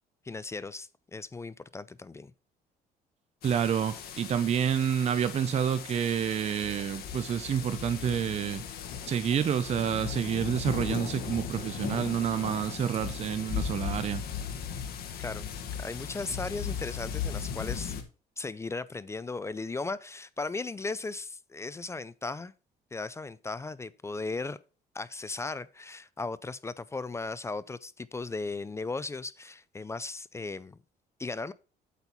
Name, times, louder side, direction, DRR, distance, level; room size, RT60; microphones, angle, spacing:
voice 1, 0.2-2.3 15.2-15.5 15.8-17.9 18.4-22.5 22.9-24.6 24.9-30.8 31.2-31.5, left 3 dB, 15° left, 0.4 m, -37 dB
sound 1, 3.4-18.0, left 7 dB, 65° left, 1.5 m, -37 dB
voice 2, 3.4-8.6 9.0-14.2, right 8 dB, 40° right, 0.6 m, -29 dB
8.1 x 4.4 x 5.4 m
cardioid pair, 110°, 17 cm